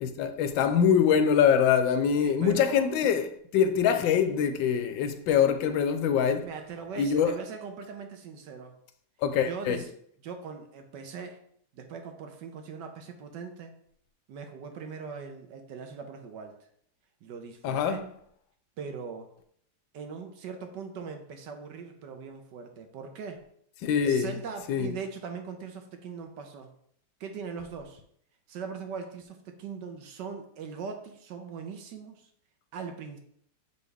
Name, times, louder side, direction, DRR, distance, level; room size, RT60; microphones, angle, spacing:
voice 1, 0.0-3.3 3.5-6.5 7.0-7.4 9.2-9.8 17.6-18.0 23.8-24.3 24.7-24.9, left 7 dB, 75° left, 1.2 m, -24 dB
voice 2, 2.2-2.9 6.4-8.7 9.5-9.9 10.2-11.4 11.7-13.7 14.3-16.6 17.2-18.1 18.8-19.3 19.9-23.4 24.0-26.7 27.2-28.0 28.5-32.3 32.7-33.2, right 5 dB, 65° right, 1.2 m, -40 dB
6.9 x 4.1 x 3.3 m
omnidirectional pair, 2.3 m